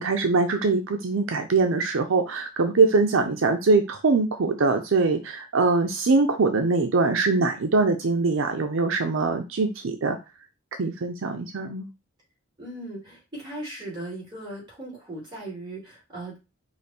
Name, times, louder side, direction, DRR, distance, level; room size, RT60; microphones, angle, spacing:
voice 1, 0.0-10.2 10.8-11.9, right 3 dB, 70° right, 6 dB, 0.5 m, -23 dB
voice 2, 12.6-16.4, right 1 dB, 20° right, -5 dB, 2.4 m, -38 dB
5.0 x 2.5 x 4.1 m, 0.26 s
head